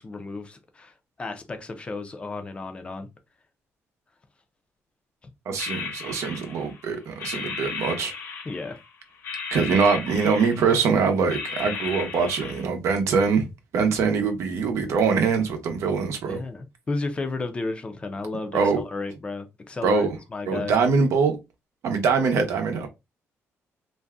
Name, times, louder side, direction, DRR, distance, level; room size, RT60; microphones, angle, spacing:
voice 1, 0.0-3.1 5.2-5.3 8.4-8.8 16.3-20.7, left 3 dB, 20° left, 0.6 m, -33 dB
voice 2, 5.5-8.1 9.5-13.5 13.7-16.4 18.5-18.8 19.8-20.1 20.5-21.4 21.8-22.9, right 5 dB, 70° right, 0.7 m, -23 dB
sound 1, 5.6-6.8 7.2-8.9 9.2-10.9 11.3-12.6, left 5 dB, 55° left, 1.0 m, -35 dB
2.6 x 2.2 x 3.4 m
cardioid pair, 140°, 5 cm